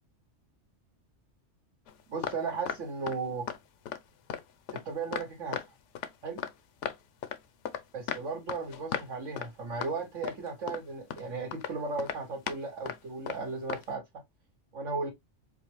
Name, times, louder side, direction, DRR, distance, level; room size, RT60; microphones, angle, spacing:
sound 1, 1.9-2.4 2.7-3.2 3.5-3.6 3.9-4.0 4.3-5.7 5.9-6.5 6.8-7.8 8.1-9.1 9.4-9.5 9.8-9.9 10.2-10.8 11.1-11.2 11.5-11.7 12.0-12.6 12.9-13.0 13.3-13.4 13.7-13.8, left 8 dB, 75° left, 0.9 m, -36 dB
voice 1, 2.1-3.5 4.7-5.6 6.2-6.4 7.9-14.0 14.7-15.1, right 4 dB, 85° right, 1.4 m, -35 dB
5.0 x 2.1 x 3.1 m
omnidirectional pair, 1.3 m